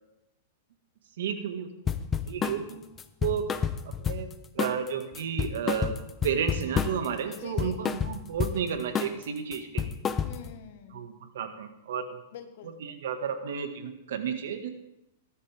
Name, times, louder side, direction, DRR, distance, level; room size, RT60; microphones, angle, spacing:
voice 1, 1.2-1.7 2.3-2.8 3.2-6.0 6.2-9.9 10.9-12.2 12.6-14.7, right 7 dB, 75° right, 6 dB, 1.9 m, -32 dB
sound 1, 1.9-2.6 3.0-4.3 4.6-4.9 5.1-7.1 7.3-8.6 8.9-9.2 9.5-10.5, left 7 dB, 20° left, 0.7 m, -29 dB
voice 2, 7.3-7.8 10.2-11.1 12.3-12.8, left 9 dB, 60° left, 7 dB, 1.7 m, -45 dB
17.5 x 12.0 x 3.6 m, 0.86 s
supercardioid pair, 150°, 0 cm